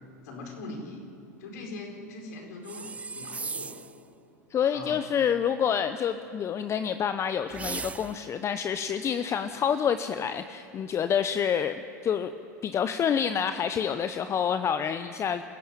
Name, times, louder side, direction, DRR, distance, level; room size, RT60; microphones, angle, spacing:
voice 1, 0.2-1.0 1.4-3.8 4.7-5.0, left 2 dB, 65° left, 1 dB, 5.0 m, -41 dB
sound 1, 2.6-4.0 7.5-8.4, right 4 dB, 15° right, 0.5 m, -37 dB
voice 2, 4.5-12.3 12.6-15.4, left 8 dB, 30° left, 11 dB, 0.8 m, -28 dB
26.0 x 15.0 x 8.9 m, 2.5 s
hypercardioid pair, 90°, 9 cm